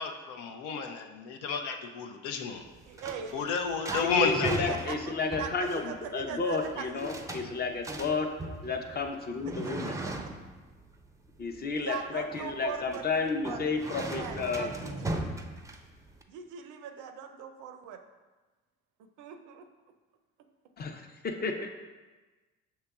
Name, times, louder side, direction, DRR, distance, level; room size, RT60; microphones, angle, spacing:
voice 1, 0.0-2.6 3.3-4.7, left 5 dB, 85° left, 5 dB, 0.5 m, -31 dB
sound 1, 2.6-16.2, right 1 dB, 10° right, 0.4 m, -39 dB
voice 2, 2.9-3.5 3.9-4.4 4.7-5.0 5.4-7.1 9.5-9.6 10.1-10.2 11.8-15.2 16.3-18.0 19.0-19.7, right 7 dB, 75° right, 7 dB, 0.5 m, -41 dB
voice 3, 4.0-8.3 8.6-10.0 11.4-14.7 20.8-21.7, left 4 dB, 30° left, 5 dB, 0.6 m, -32 dB
6.4 x 2.9 x 2.3 m, 1.2 s
hypercardioid pair, 60°, 31 cm